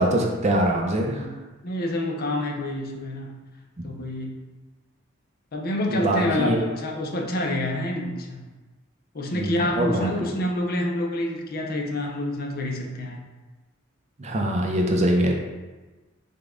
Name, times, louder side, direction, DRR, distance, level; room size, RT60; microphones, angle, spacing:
voice 1, 0.0-1.3 5.9-6.6 9.3-10.1 14.2-15.3, right 1 dB, 35° right, 1 dB, 0.5 m, -23 dB
voice 2, 1.0-1.4 1.6-3.4 3.8-4.3 5.5-8.4 9.1-13.2, left 1 dB, 50° left, 1 dB, 0.6 m, -27 dB
5.1 x 2.3 x 3.7 m, 1.2 s
head